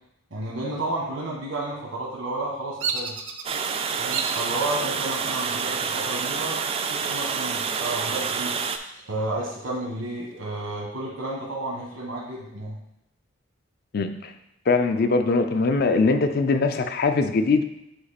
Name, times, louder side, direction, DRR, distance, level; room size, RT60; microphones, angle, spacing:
voice 1, 0.3-3.1 4.0-6.6 6.9-8.5 9.1-12.8, right 2 dB, 85° right, -4 dB, 1.3 m, -31 dB
Bird vocalization bird call bird song, 2.8-3.6 4.1-4.5 5.1-5.6 6.8-7.6 7.9-8.0 8.5-9.9, right 6 dB, 70° right, 0.6 m, -32 dB
Water, 3.4-8.8, right 6 dB, 30° right, 0.3 m, -28 dB
voice 2, 13.9-14.3 14.7-17.6, left 3 dB, 50° left, 8 dB, 0.5 m, -21 dB
8.0 x 3.0 x 4.1 m, 0.84 s
head